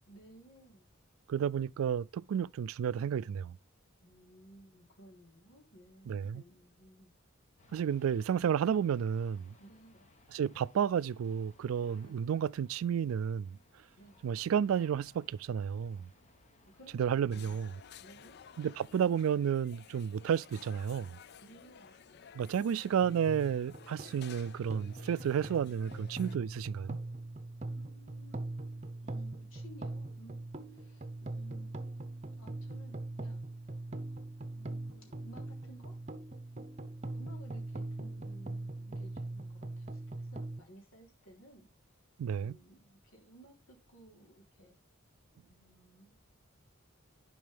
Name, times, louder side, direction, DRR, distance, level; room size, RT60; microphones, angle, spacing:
voice 1, 0.1-0.8 4.0-7.1 9.6-10.1 12.0-12.1 13.9-14.2 16.7-16.9 17.3-17.6 18.0-18.4 21.4-21.9 27.7-28.4 28.9-30.4 30.7-31.8 32.4-33.4 34.5-35.9 36.5-36.8 37.1-41.7 42.3-44.7 45.5-46.2, right 1 dB, 80° left, 3.3 m, -57 dB
voice 2, 1.3-3.6 6.1-6.4 7.7-9.5 10.3-13.6 14.2-16.1 17.0-17.7 18.6-21.2 22.3-27.0 42.2-42.6, right 8 dB, 80° right, 0.3 m, -31 dB
sound 1, 7.6-19.2, left 2 dB, 35° left, 1.4 m, -64 dB
sound 2, 17.3-26.4, left 8 dB, 55° left, 0.4 m, -55 dB
sound 3, 23.0-40.6, right 2 dB, 35° right, 0.8 m, -42 dB
11.0 x 5.1 x 3.3 m
head